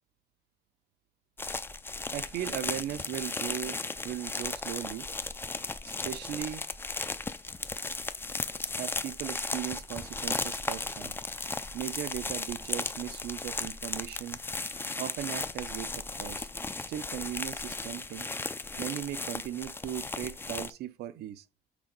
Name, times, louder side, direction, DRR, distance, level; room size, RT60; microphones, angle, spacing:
sound 1, 1.4-20.7, left 3 dB, 15° left, 0.5 m, -36 dB
voice 1, 2.1-5.1 5.8-6.7 8.7-11.2 11.7-14.4 15.0-16.5 16.9-18.3 18.8-21.4, right 12 dB, 75° right, 0.7 m, -38 dB
6.2 x 4.0 x 5.3 m
cardioid pair, 110°, 17 cm